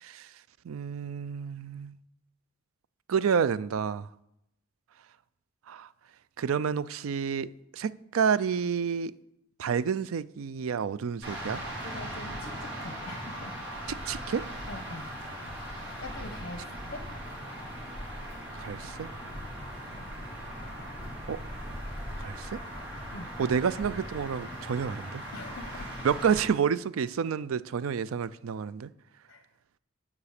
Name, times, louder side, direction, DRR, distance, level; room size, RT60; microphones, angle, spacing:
voice 1, 0.6-1.9 3.1-4.1 5.7-5.9 6.4-9.1 9.6-11.6 13.9-14.4 18.6-19.1 21.3-21.4 22.2-22.6 23.4-25.2 26.0-28.9, right 7 dB, 85° right, 0.4 m, -29 dB
sound 1, 11.2-26.4, equal, 65° right, 4.6 m, -39 dB
voice 2, 11.8-13.5 14.7-15.1 16.0-16.6 16.9-17.0 19.5-19.6 23.1-23.3 25.3-26.1 27.8-28.0 29.3-29.4, left 2 dB, 55° left, 0.9 m, -43 dB
9.8 x 6.0 x 6.6 m
head